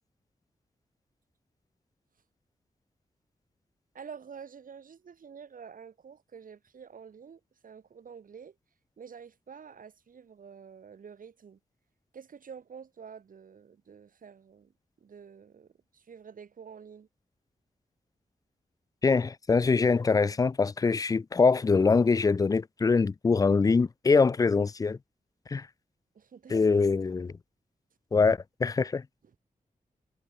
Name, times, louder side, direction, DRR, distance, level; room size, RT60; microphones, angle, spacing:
voice 1, 3.9-8.5 9.0-11.6 12.1-14.7 15.0-17.1 26.1-26.6, right 6 dB, 75° right, 6.7 m, -48 dB
voice 2, 19.0-25.0 25.5-25.7 26.5-27.3 28.1-29.0, left 4 dB, 25° left, 0.3 m, -24 dB
wide cardioid pair, 150°, 14 cm